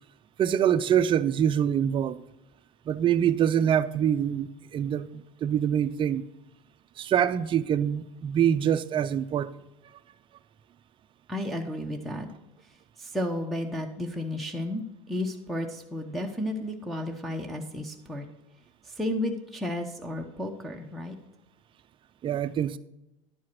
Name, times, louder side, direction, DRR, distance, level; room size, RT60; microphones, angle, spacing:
voice 1, 0.4-2.2 2.9-6.2 7.0-9.5 22.2-22.8, right 9 dB, 30° right, 0.5 m, -25 dB
voice 2, 11.3-12.3 13.0-18.3 18.8-21.2, left 1 dB, ahead, 0.8 m, -32 dB
10.5 x 4.7 x 5.8 m
supercardioid pair, 110°, 17 cm